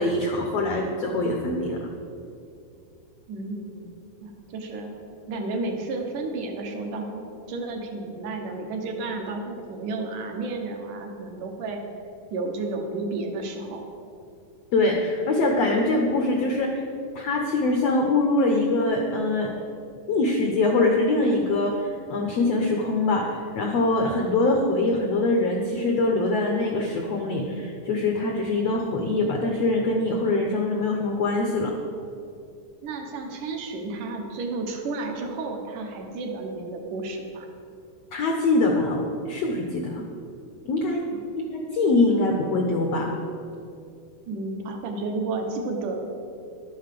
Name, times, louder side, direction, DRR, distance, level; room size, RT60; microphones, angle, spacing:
voice 1, 0.0-1.9 14.7-16.8 17.1-19.5 20.1-31.7 38.1-40.1 40.6-41.0 41.3-43.1, left 2 dB, 70° left, 2 dB, 1.5 m, -23 dB
voice 2, 3.3-3.9 4.2-4.9 5.3-11.8 12.3-13.9 32.8-37.5 44.3-46.0, right 3 dB, 65° right, 3 dB, 2.5 m, -32 dB
11.5 x 7.9 x 6.7 m, 2.6 s
omnidirectional pair, 4.2 m